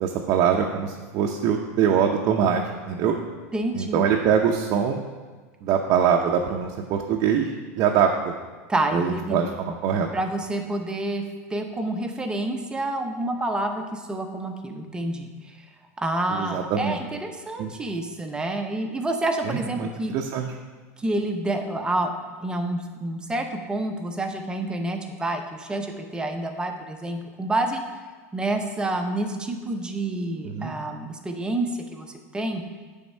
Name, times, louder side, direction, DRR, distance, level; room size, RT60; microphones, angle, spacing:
voice 1, 0.0-2.6 2.9-3.1 3.7-5.0 5.6-7.5 7.8-8.1 8.9-10.1 16.3-17.0 17.6-17.7 19.5-20.5 30.4-30.7, right 8 dB, 50° right, 0 dB, 0.6 m, -23 dB
voice 2, 3.5-4.1 8.7-9.4 10.1-11.2 11.5-15.6 16.0-20.1 21.0-22.1 22.4-27.8 28.3-32.6, right 2 dB, 10° right, 5 dB, 0.7 m, -28 dB
9.2 x 3.6 x 5.4 m, 1.4 s
supercardioid pair, 130°, 8 cm